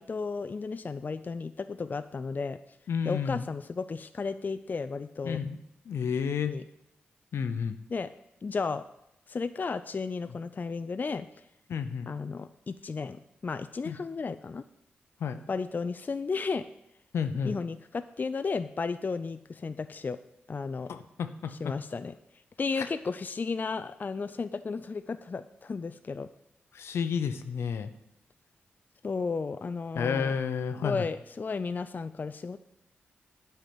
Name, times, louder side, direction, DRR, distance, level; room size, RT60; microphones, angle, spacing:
voice 1, 0.0-2.6 3.0-5.4 6.5-6.6 7.9-8.1 8.4-8.8 9.3-11.3 12.1-14.6 15.5-16.7 17.4-20.2 20.5-20.9 21.5-22.1 22.6-26.3 29.0-30.4 30.8-32.6, left 4 dB, 45° left, 11 dB, 0.4 m, -33 dB
voice 2, 2.9-3.5 5.2-5.6 5.9-6.5 7.3-7.8 11.7-12.1 13.8-14.0 15.2-15.4 17.1-17.6 20.9-21.7 22.8-22.9 26.7-27.9 30.0-31.1, left 6 dB, 80° left, 9 dB, 0.8 m, -31 dB
8.9 x 5.7 x 7.7 m, 0.81 s
cardioid pair, 55°, 4 cm